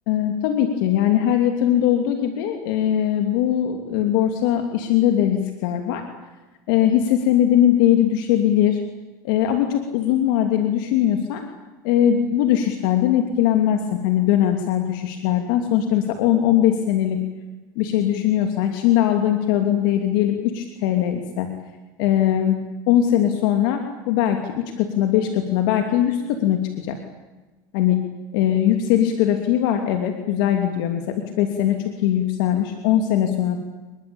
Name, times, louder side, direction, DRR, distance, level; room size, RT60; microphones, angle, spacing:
voice 1, 0.1-6.0 6.7-8.8 9.2-11.4 11.8-17.2 17.8-21.5 22.0-22.6 22.9-27.0 27.7-28.0 28.3-33.6, left 11 dB, 75° left, 5 dB, 2.9 m, -20 dB
26.5 x 22.0 x 8.9 m, 1.2 s
supercardioid pair, 135°, 11 cm